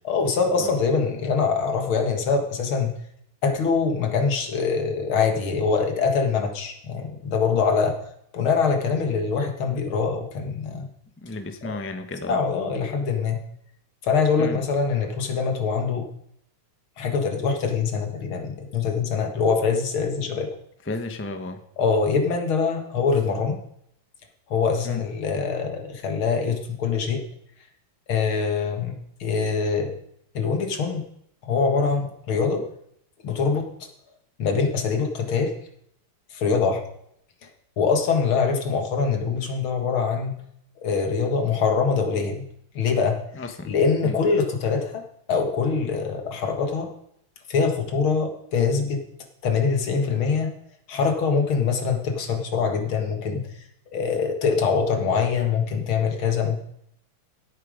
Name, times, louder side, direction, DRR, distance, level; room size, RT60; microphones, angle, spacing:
voice 1, 0.0-2.9 3.4-8.0 8.3-10.9 11.6-11.7 12.3-13.4 14.0-16.1 17.0-20.5 21.8-23.6 24.5-27.2 28.1-29.9 30.3-31.0 31.4-32.6 33.2-33.9 34.4-35.5 36.3-36.8 37.8-40.3 40.8-42.4 42.7-43.2 43.7-45.0 45.3-46.9 47.5-49.0 49.4-50.5 50.9-53.4 53.9-56.6, left 5 dB, 70° left, 5 dB, 2.5 m, -23 dB
voice 2, 11.2-12.4 14.4-14.6 20.9-21.6 24.8-25.0 43.3-43.7 44.0-44.2, left 2 dB, 10° left, 6 dB, 0.7 m, -33 dB
16.5 x 9.0 x 5.1 m, 0.72 s
omnidirectional pair, 2.4 m